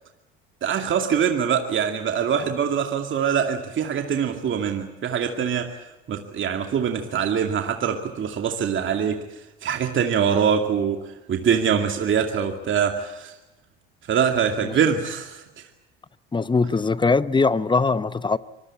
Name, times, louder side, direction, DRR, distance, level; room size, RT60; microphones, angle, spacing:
voice 1, 0.6-5.7 6.1-9.2 9.6-11.0 11.3-13.3 14.1-15.7, right 7 dB, 40° right, 2.3 m, -23 dB
voice 2, 16.3-18.4, left 4 dB, 15° left, 0.9 m, -21 dB
25.0 x 20.5 x 8.6 m
hypercardioid pair, 80°, 29 cm